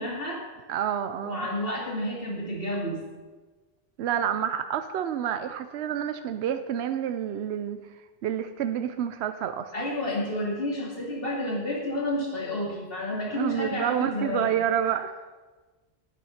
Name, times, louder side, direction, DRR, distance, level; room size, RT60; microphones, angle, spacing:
voice 1, 0.0-0.6 1.2-3.0 9.7-14.6, left 1 dB, 60° left, -3 dB, 2.7 m, -30 dB
voice 2, 0.7-1.5 4.0-7.8 8.2-9.7 13.3-15.1, right 9 dB, 85° right, 9 dB, 0.9 m, -28 dB
9.8 x 9.2 x 5.6 m, 1.3 s
omnidirectional pair, 1.1 m